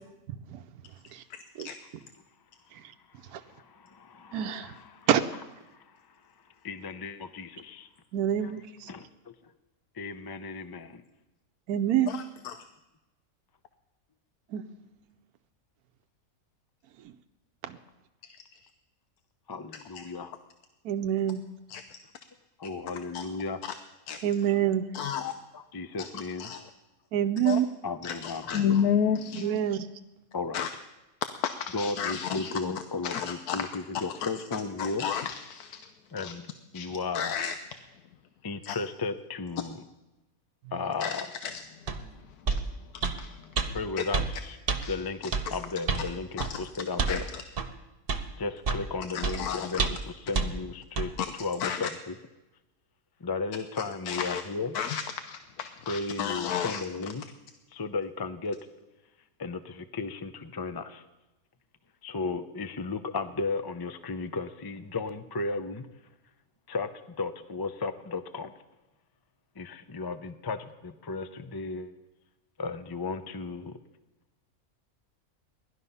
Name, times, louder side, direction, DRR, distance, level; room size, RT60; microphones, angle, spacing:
voice 1, 0.3-0.6 1.1-1.2 1.6-1.7 2.7-2.8 3.3-3.4 4.3-4.7 5.1-5.2 8.1-8.9 11.7-12.2 14.5-14.6 17.7-17.8 20.8-21.4 24.2-24.8 27.1-27.7 29.4-29.9, right 10 dB, 80° right, 8 dB, 1.2 m, -27 dB
voice 2, 3.4-5.1 5.7-6.0 6.6-7.9 8.4-8.5 8.9-9.3 9.9-11.0 19.5-20.3 22.6-23.6 25.7-26.5 27.8-28.7 30.3-30.6 31.7-35.1 36.1-36.5 36.7-37.4 38.4-39.8 40.7-41.3 43.7-44.6 44.9-47.3 48.4-52.1 53.2-54.7 55.9-57.2 57.7-58.6 59.4-61.0 62.0-65.9 66.7-68.5 69.6-72.0 72.6-73.8, left 4 dB, 35° left, 10 dB, 0.4 m, -35 dB
voice 3, 12.1-12.6 18.3-18.4 21.7-21.8 23.1-23.2 23.6-23.7 24.1-24.2 24.9-25.3 26.0-26.1 26.4-26.6 27.5-27.6 28.0-29.5 30.5-30.7 31.4-32.5 33.0-33.7 33.9-35.8 36.2-36.3 36.7-36.9 37.1-37.6 38.6-38.8 41.0-41.6 42.9-43.8 44.8-45.0 45.5-45.6 46.4-46.6 47.1-47.4 49.1-49.9 51.2-51.3 51.6-51.8 54.1-54.4 54.7-56.8, left 8 dB, 85° left, 8 dB, 1.2 m, -32 dB
sound 1, 41.9-42.0 42.5-42.6 43.0-43.2 43.6-43.7 44.1-44.3 44.7-44.8 45.3-45.5 45.9-46.1 46.4-46.5 47.0-47.2 47.6-47.7 48.1-48.2 48.6-48.9 49.2-49.4 49.8-50.1 50.3-50.5 51.0-51.1, right 4 dB, 40° right, 1.1 m, -28 dB
18.5 x 12.0 x 5.6 m, 1.0 s
omnidirectional pair, 1.6 m